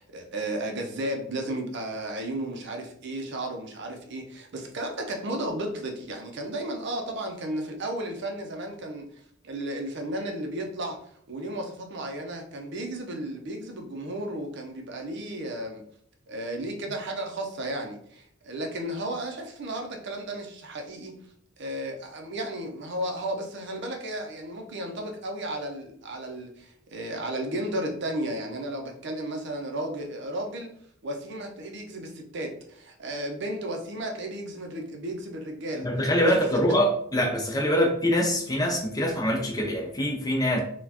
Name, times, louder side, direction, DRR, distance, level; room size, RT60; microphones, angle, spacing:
voice 1, 0.0-9.1 9.4-11.0 11.3-15.8 16.3-21.2 21.6-30.7 31.0-35.9 36.2-36.7 37.7-37.8, right 1 dB, 55° right, 3 dB, 0.5 m, -34 dB
voice 2, 35.8-40.6, equal, 15° left, 1 dB, 0.5 m, -24 dB
4.1 x 2.2 x 2.8 m, 0.65 s
head